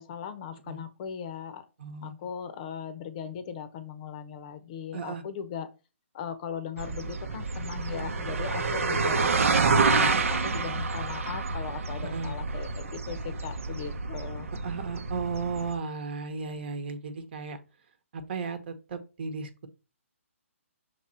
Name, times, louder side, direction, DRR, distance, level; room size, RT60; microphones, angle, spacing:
voice 1, 0.0-1.7 2.0-5.7 6.1-9.3 9.6-14.5, left 8 dB, 30° left, 12 dB, 0.7 m, -38 dB
voice 2, 1.8-2.3 4.9-5.2 8.9-9.2 12.1-12.3 14.6-17.6 18.1-19.7, right 4 dB, 45° right, 9 dB, 1.2 m, -35 dB
sound 1, 6.8-15.7, right 4 dB, 70° right, 1.0 m, -28 dB
6.3 x 3.6 x 4.2 m, 0.30 s
hypercardioid pair, 155°, 8 cm